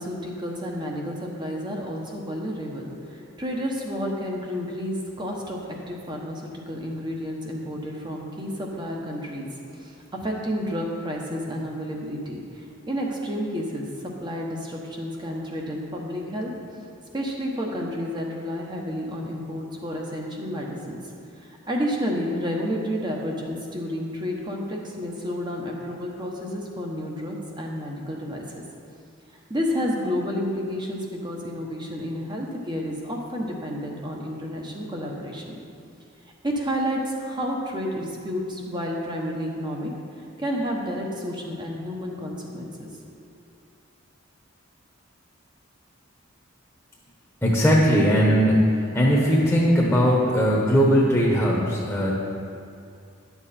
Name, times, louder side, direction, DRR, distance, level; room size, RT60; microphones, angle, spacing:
voice 1, 0.0-5.6 5.9-9.5 9.7-16.5 17.1-21.0 21.4-28.6 29.5-35.5 36.4-39.9 40.4-42.9 43.1-43.2, equal, 20° right, -1 dB, 1.1 m, -30 dB
voice 2, 47.4-52.1, equal, 10° left, -4 dB, 1.1 m, -19 dB
11.0 x 7.1 x 4.3 m, 2.5 s
head